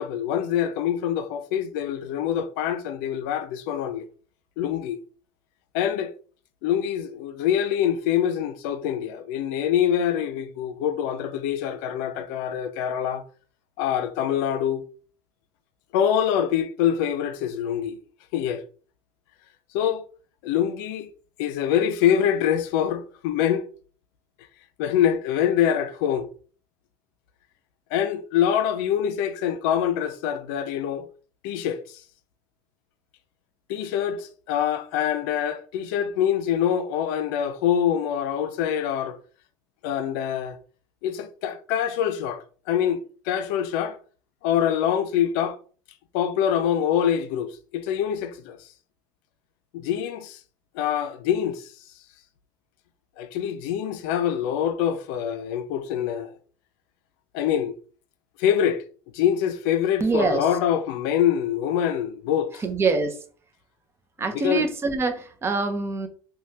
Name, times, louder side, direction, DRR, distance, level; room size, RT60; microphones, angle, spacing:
voice 1, 0.0-4.1 4.6-5.0 5.7-6.1 6.6-13.2 13.8-14.8 15.9-18.0 18.3-18.6 19.7-20.0 20.4-21.1 21.4-23.7 24.8-26.3 27.9-31.1 31.4-32.0 33.7-39.2 39.8-40.6 41.0-44.0 44.4-45.6 46.1-48.6 49.7-50.4 50.7-51.7 53.2-56.4 57.3-57.7 58.4-58.8 59.1-62.6 64.4-64.7, left 9 dB, 75° left, 0.4 m, -25 dB
voice 2, 60.0-60.5 62.6-63.2 64.2-66.1, right 3 dB, 25° right, 0.6 m, -24 dB
3.2 x 2.2 x 2.8 m
supercardioid pair, 105°, 11 cm